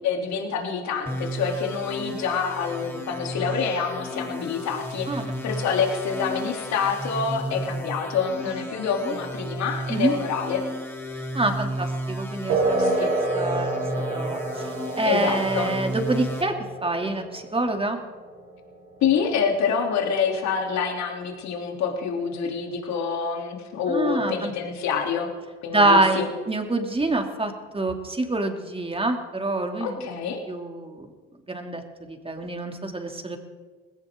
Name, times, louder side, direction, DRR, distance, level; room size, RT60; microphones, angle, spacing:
voice 1, 0.0-10.6 12.8-13.1 15.0-15.7 19.0-25.3 25.6-26.3 29.8-30.4, left 6 dB, 65° left, 2 dB, 3.1 m, -27 dB
sound 1, 1.1-16.4, equal, 10° left, 3.3 m, -33 dB
voice 2, 11.3-12.9 13.3-13.7 14.1-16.5 16.8-18.0 23.9-24.5 25.7-30.2 30.5-31.1 31.5-33.4, right 2 dB, 20° right, 4 dB, 2.6 m, -26 dB
sound 2, 12.5-20.5, right 2 dB, 80° right, 3.8 m, -29 dB
20.0 x 17.5 x 3.7 m, 1.4 s
hypercardioid pair, 55°, 30 cm